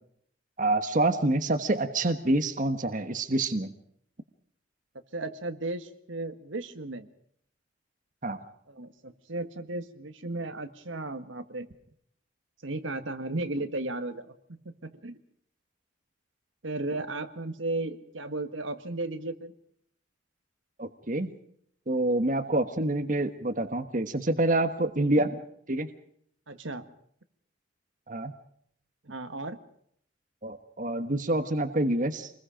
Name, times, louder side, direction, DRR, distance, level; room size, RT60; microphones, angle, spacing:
voice 1, 0.6-3.7 8.2-8.4 20.8-21.3 21.9-25.4 25.7-25.9 28.1-28.3 30.4-32.3, right 2 dB, 40° right, 8 dB, 1.4 m, -27 dB
voice 2, 5.1-7.1 8.7-11.7 12.6-14.4 14.6-15.2 16.6-19.5 26.5-26.9 29.0-29.6, right 2 dB, 75° right, 8 dB, 1.7 m, -35 dB
27.5 x 21.0 x 5.1 m, 0.66 s
head